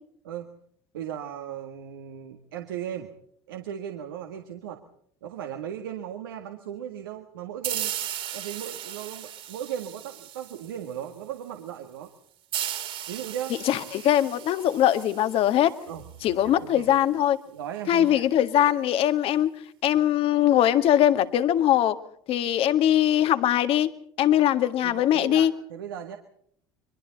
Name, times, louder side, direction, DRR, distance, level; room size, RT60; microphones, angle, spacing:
voice 1, 0.9-3.1 3.5-4.8 5.2-7.9 8.3-12.1 13.1-13.6 15.9-16.0 16.4-16.9 17.5-18.3 24.8-26.2, right 10 dB, 85° right, 4 dB, 1.8 m, -37 dB
sound 1, 7.6-11.0 12.5-16.0, right 11 dB, 55° right, 3.4 m, -36 dB
voice 2, 13.7-15.7 16.2-17.4 17.9-19.5 19.8-22.0 22.3-23.9 24.2-25.5, left 11 dB, 55° left, 10 dB, 1.7 m, -21 dB
30.0 x 23.5 x 4.1 m, 0.67 s
hypercardioid pair, 70°, 11 cm